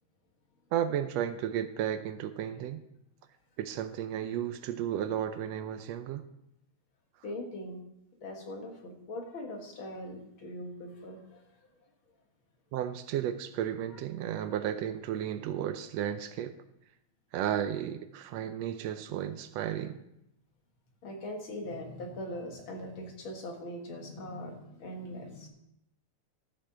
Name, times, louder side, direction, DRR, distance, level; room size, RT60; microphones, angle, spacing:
voice 1, 0.7-2.8 3.6-6.2 12.7-16.6 17.3-20.0, right 10 dB, 75° right, 10 dB, 1.7 m, -33 dB
voice 2, 7.2-7.8 8.2-11.4 21.0-25.5, left 1 dB, 50° left, 2 dB, 2.1 m, -41 dB
13.5 x 7.2 x 4.7 m, 0.81 s
omnidirectional pair, 3.3 m